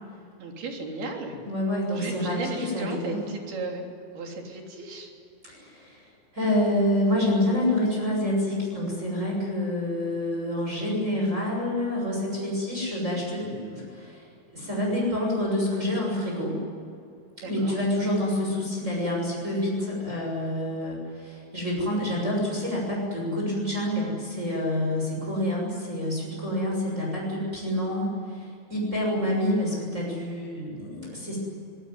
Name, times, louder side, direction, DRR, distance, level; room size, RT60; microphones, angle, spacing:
voice 1, 0.4-1.4 1.9-3.9 4.1-5.1 17.4-17.8 29.1-29.4, right 3 dB, 80° right, 1 dB, 5.4 m, -35 dB
voice 2, 1.4-3.2 5.4-14.2 14.5-16.6 17.4-31.4, left 1 dB, 20° right, -2 dB, 7.0 m, -27 dB
25.5 x 19.5 x 9.6 m, 2.5 s
omnidirectional pair, 4.4 m